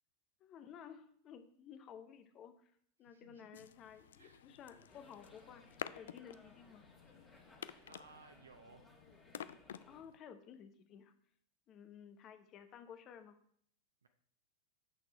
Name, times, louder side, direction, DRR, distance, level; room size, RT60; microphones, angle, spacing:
voice 1, 0.4-2.7 3.0-6.8 9.9-11.1 11.7-13.4, left 8 dB, 35° left, 9 dB, 0.9 m, -55 dB
voice 2, 3.1-3.7 4.2-4.4 7.8-8.9 14.0-14.1, right 3 dB, 70° right, 7 dB, 0.7 m, -60 dB
sound 1, 3.5-10.2, left 9 dB, 60° left, 0.3 m, -51 dB
sound 2, 4.9-10.0, left 2 dB, 10° left, 1.8 m, -63 dB
7.9 x 6.4 x 4.3 m, 0.65 s
figure-of-eight pair, 90°, 0 cm